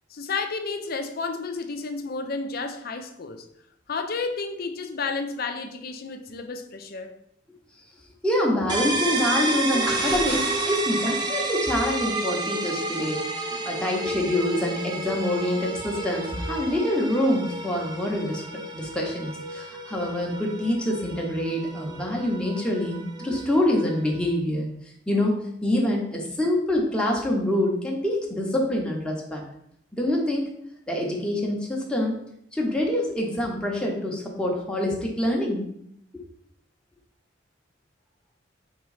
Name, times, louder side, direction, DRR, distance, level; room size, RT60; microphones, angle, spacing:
voice 1, 0.1-3.5 3.9-7.1, left 4 dB, 55° left, 6 dB, 0.5 m, -31 dB
voice 2, 8.2-18.4 18.7-24.7 25.1-25.3 25.6-29.4 29.9-30.5 30.9-32.1 32.5-35.6 36.1-36.2, left 1 dB, 5° left, -2 dB, 0.8 m, -26 dB
sound 1, 8.7-24.3, right 2 dB, 25° right, 0.5 m, -31 dB
sound 2, 9.8-12.0 16.2-16.3, right 1 dB, 65° right, 1.8 m, -35 dB
3.6 x 3.0 x 4.8 m, 0.73 s
head